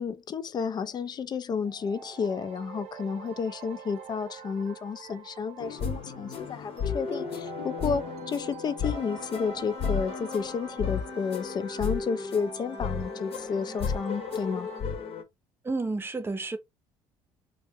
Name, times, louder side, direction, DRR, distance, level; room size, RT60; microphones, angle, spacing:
voice 1, 0.0-14.7, left 5 dB, 35° left, 0.4 m, -31 dB
sound 1, 1.6-14.8, right 7 dB, 65° right, 0.6 m, -46 dB
sound 2, 5.6-15.2, left 6 dB, 55° left, 0.8 m, -34 dB
voice 2, 15.6-16.6, right 3 dB, 20° right, 0.7 m, -30 dB
2.6 x 2.1 x 3.5 m
hypercardioid pair, 65°, 12 cm